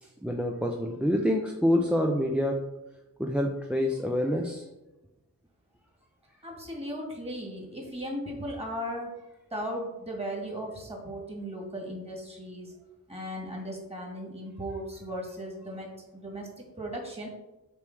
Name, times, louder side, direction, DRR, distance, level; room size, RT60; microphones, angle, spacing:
voice 1, 0.0-2.6 3.2-4.6, left 1 dB, 5° right, 1 dB, 0.6 m, -27 dB
voice 2, 6.4-9.1 9.5-12.7 13.1-17.3, equal, 20° right, -1 dB, 2.2 m, -37 dB
7.0 x 3.2 x 6.1 m, 1.0 s
wide cardioid pair, 100°, 32 cm